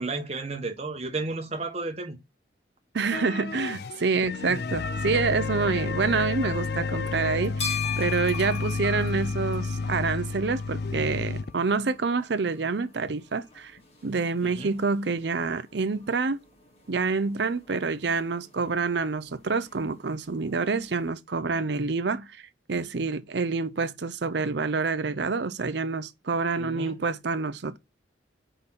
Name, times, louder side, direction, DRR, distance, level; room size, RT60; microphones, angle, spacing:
voice 1, 0.0-2.2 14.4-14.8 26.5-27.0, right 3 dB, 35° right, 1.0 m, -33 dB
voice 2, 2.9-13.7 14.0-16.4 16.9-27.8, right 4 dB, 65° right, 0.6 m, -27 dB
sound 1, 3.1-11.7 13.0-13.1 13.8-13.9, left 4 dB, 55° left, 0.4 m, -31 dB
sound 2, 4.7-11.1, right 2 dB, 80° left, 1.7 m, -47 dB
sound 3, 7.2-21.1, left 8 dB, 35° left, 1.4 m, -41 dB
5.1 x 4.2 x 5.8 m
head